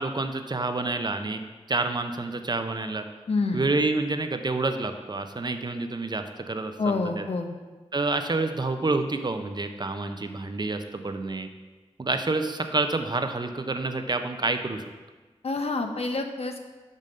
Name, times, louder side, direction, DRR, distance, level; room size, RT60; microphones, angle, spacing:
voice 1, 0.0-1.4 1.7-3.1 3.5-7.3 7.9-11.5 12.0-14.9, right 3 dB, 40° right, 7 dB, 0.6 m, -28 dB
voice 2, 3.3-3.7 6.8-7.6 15.4-16.6, left 3 dB, 65° left, 5 dB, 0.7 m, -27 dB
5.5 x 5.3 x 6.4 m, 1.3 s
wide cardioid pair, 75°, 11 cm